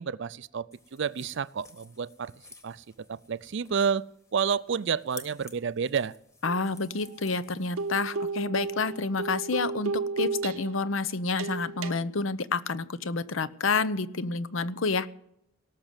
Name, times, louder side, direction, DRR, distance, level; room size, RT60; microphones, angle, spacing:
voice 1, 0.0-2.3 2.6-2.8 3.1-4.0 4.3-6.1, right 6 dB, 60° right, 19 dB, 0.4 m, -30 dB
sound 1, 0.7-8.2, left 3 dB, 15° left, 1.6 m, -52 dB
voice 2, 6.4-15.1, left 4 dB, 70° left, 15 dB, 0.8 m, -29 dB
sound 2, 6.5-6.7 7.0-7.1 7.8-10.8 11.4-11.9, right 3 dB, 80° right, 0.9 m, -33 dB
18.0 x 6.7 x 9.0 m, 0.77 s
head